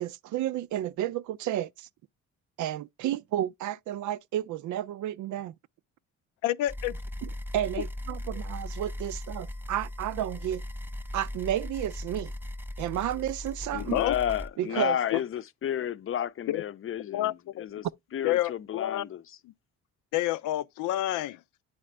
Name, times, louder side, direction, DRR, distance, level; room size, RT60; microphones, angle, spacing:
voice 1, 0.0-1.9 2.6-5.5 7.5-10.6 11.1-12.3 12.8-14.0 14.6-15.0, right 12 dB, 75° right, 0.5 m, -31 dB
voice 2, 6.4-7.0 13.7-14.2 15.1-15.2 16.5-16.6 17.1-17.7 18.2-19.0 19.4-19.5 20.1-21.4, left 14 dB, 90° left, 0.5 m, -29 dB
sound 1, 6.7-14.5, left 1 dB, 5° right, 0.6 m, -38 dB
voice 3, 13.8-17.9 18.1-19.4, left 10 dB, 45° left, 0.6 m, -32 dB
8.6 x 5.0 x 3.3 m
cardioid pair, 90°, 30 cm